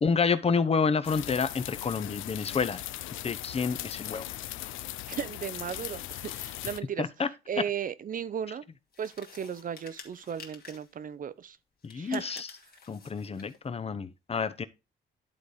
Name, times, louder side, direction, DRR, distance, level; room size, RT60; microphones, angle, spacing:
voice 1, 0.0-2.8 3.2-4.3 7.0-7.3 11.8-12.5 12.9-14.6, left 5 dB, 30° left, 0.8 m, -29 dB
sound 1, 1.0-6.8, left 14 dB, 85° left, 0.5 m, -39 dB
voice 2, 5.1-7.0 7.5-8.6 9.0-11.6 12.0-12.4, right 8 dB, 45° right, 0.6 m, -35 dB
sound 2, 8.9-11.0 11.8-13.6, left 5 dB, 50° left, 2.0 m, -51 dB
11.0 x 4.0 x 4.9 m
cardioid pair, 90°, 20 cm